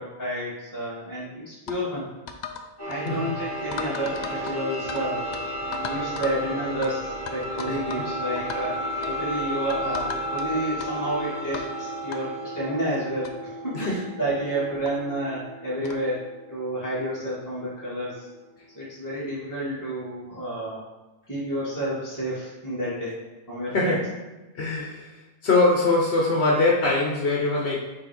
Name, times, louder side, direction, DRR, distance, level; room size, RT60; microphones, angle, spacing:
voice 1, 0.0-2.1 2.8-5.3 5.8-8.8 9.0-16.2 16.5-18.2 18.7-20.8 21.3-23.1 23.5-24.0, right 1 dB, 15° left, -10 dB, 2.1 m, -30 dB
sound 1, 1.7-1.8 2.3-2.6 2.9-3.1 3.7-5.0 5.3-5.4 5.7-6.4 6.8-6.9 7.3-8.1 8.3-8.6 9.0-9.2 9.7-10.4 10.8-10.9 11.5-11.7 12.1-12.2 12.9-13.0 13.2-13.3 13.8-14.0 14.8-14.9 15.8-16.0, left 6 dB, 55° left, 0.5 m, -36 dB
sound 2, 2.8-18.4, equal, 20° right, 1.4 m, -33 dB
voice 2, 3.0-3.4 7.7-7.8 13.7-14.0 23.7-24.1 24.6-25.1 25.4-27.8, left 2 dB, 70° left, -3 dB, 1.2 m, -22 dB
7.0 x 3.2 x 4.2 m, 1.1 s
omnidirectional pair, 1.1 m